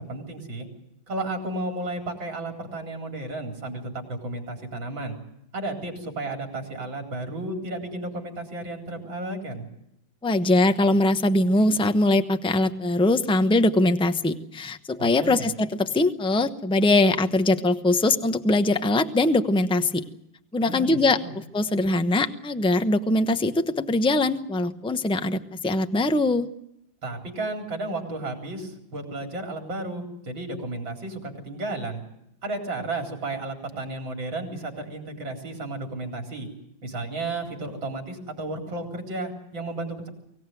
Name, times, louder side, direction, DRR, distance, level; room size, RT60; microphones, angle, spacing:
voice 1, 0.1-0.7 1.1-5.1 5.5-9.7 15.0-15.5 20.6-21.3 27.0-32.0 32.4-36.5 36.8-40.1, right 2 dB, 80° right, 3 dB, 4.8 m, -33 dB
voice 2, 10.2-20.0 20.5-21.2 21.5-26.5, left 2 dB, 5° left, 9 dB, 0.4 m, -22 dB
24.5 x 17.0 x 9.2 m, 0.80 s
omnidirectional pair, 2.1 m